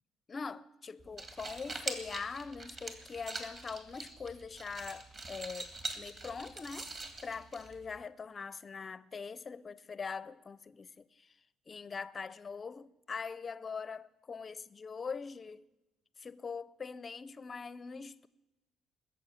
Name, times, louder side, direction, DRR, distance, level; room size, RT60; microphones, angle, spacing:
voice 1, 0.3-6.9 7.2-11.4 11.7-15.7 16.2-18.3, left 5 dB, 25° left, 0.5 m, -42 dB
sound 1, 1.0-8.0, right 3 dB, 30° right, 1.8 m, -44 dB
20.5 x 7.2 x 9.7 m
cardioid pair, 155°, 0 cm